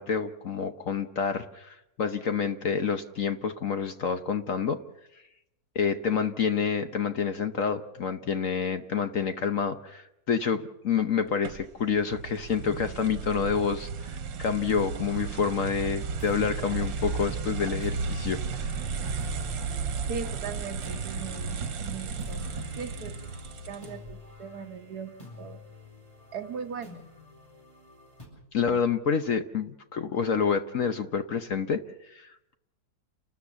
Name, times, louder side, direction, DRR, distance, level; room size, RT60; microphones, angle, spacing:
voice 1, 0.0-4.8 5.7-18.7 28.5-32.5, left 6 dB, 55° left, 8 dB, 1.1 m, -28 dB
sound 1, 11.4-24.1, right 5 dB, 85° right, 1.7 m, -34 dB
sound 2, 15.8-28.3, left 3 dB, 20° left, 8.2 m, -45 dB
voice 2, 20.1-23.1 23.7-25.1 25.4-25.6 26.3-27.0 28.7-28.8, right 6 dB, 60° right, 7 dB, 1.6 m, -39 dB
30.0 x 13.5 x 7.2 m, 0.89 s
omnidirectional pair, 2.0 m